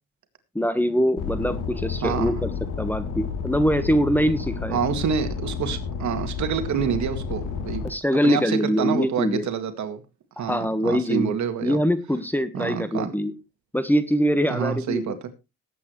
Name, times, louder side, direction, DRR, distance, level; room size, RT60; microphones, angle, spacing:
voice 1, 0.5-2.5 2.8-4.8 7.8-9.4 10.4-11.4 11.6-13.3 13.7-15.1, equal, 5° left, 12 dB, 1.3 m, -23 dB
sound 1, 1.2-7.9, left 6 dB, 85° left, 3.2 m, -31 dB
voice 2, 2.0-2.4 4.7-7.8 8.2-10.0 10.4-11.8 12.5-13.1 14.5-15.3, right 7 dB, 70° right, 9 dB, 2.0 m, -27 dB
18.5 x 8.4 x 3.1 m, 0.27 s
cardioid pair, 90°, 30 cm